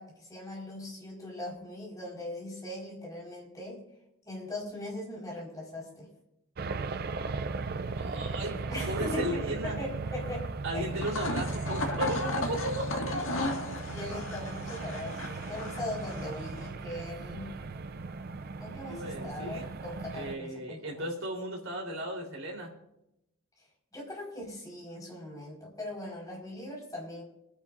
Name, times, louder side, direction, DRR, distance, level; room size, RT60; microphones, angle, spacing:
voice 1, 0.0-3.8 4.2-6.1 8.7-10.9 11.7-11.8 13.8-17.5 18.6-21.1 23.9-27.2, left 1 dB, 15° left, -3 dB, 4.6 m, -40 dB
sound 1, 6.6-20.3, right 4 dB, 45° right, 0.4 m, -37 dB
voice 2, 8.0-9.8 10.6-13.1 18.9-19.7 20.1-22.8, right 1 dB, 70° right, -1 dB, 3.7 m, -35 dB
sound 2, 10.9-16.7, left 2 dB, 70° left, 1.9 m, -36 dB
25.5 x 10.0 x 2.6 m, 0.84 s
head